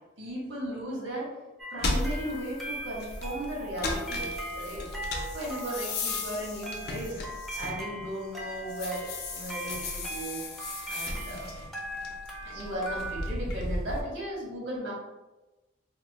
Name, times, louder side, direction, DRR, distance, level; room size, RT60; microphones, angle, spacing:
voice 1, 0.2-1.3 1.7-4.3 4.5-4.8 5.3-7.2 7.6-10.4 10.9-11.5 12.4-14.9, right 1 dB, 90° right, -4 dB, 1.2 m, -36 dB
sound 1, 1.6-13.3, right 1 dB, ahead, 0.4 m, -40 dB
sound 2, 1.8-8.2 8.6-14.0, left 2 dB, 55° left, 0.5 m, -35 dB
2.8 x 2.0 x 3.9 m, 1.1 s
head